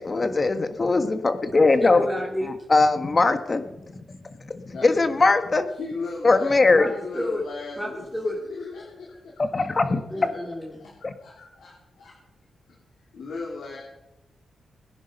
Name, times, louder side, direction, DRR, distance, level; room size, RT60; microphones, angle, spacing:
voice 1, 0.0-2.0 2.7-3.6 3.9-5.7 6.2-6.9 9.4-10.0 11.0-11.1, left 3 dB, 30° left, 9 dB, 1.4 m, -21 dB
voice 2, 1.8-2.5 6.7-7.4 7.8-8.4 10.1-10.8, left 1 dB, ahead, -2 dB, 2.9 m, -30 dB
voice 3, 5.8-6.6 6.9-10.2 10.8-12.1 12.7-13.8, left 3 dB, 80° left, -3 dB, 3.5 m, -38 dB
21.0 x 10.5 x 5.3 m, 0.93 s
wide cardioid pair, 125°, 0 cm